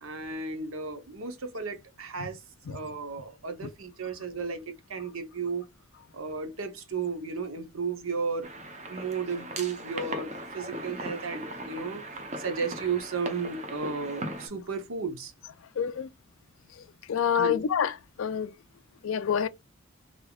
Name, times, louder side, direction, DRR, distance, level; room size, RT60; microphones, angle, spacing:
voice 1, 0.0-2.4 2.7-5.6 6.1-8.5 8.9-12.0 12.4-15.3 17.3-17.6, right 5 dB, 75° right, 0.8 m, -34 dB
sound 1, 8.4-14.5, right 1 dB, 30° right, 0.7 m, -38 dB
voice 2, 15.8-16.1 17.1-17.9 18.2-18.5 19.0-19.5, left 8 dB, 70° left, 0.4 m, -27 dB
3.5 x 3.4 x 2.3 m
head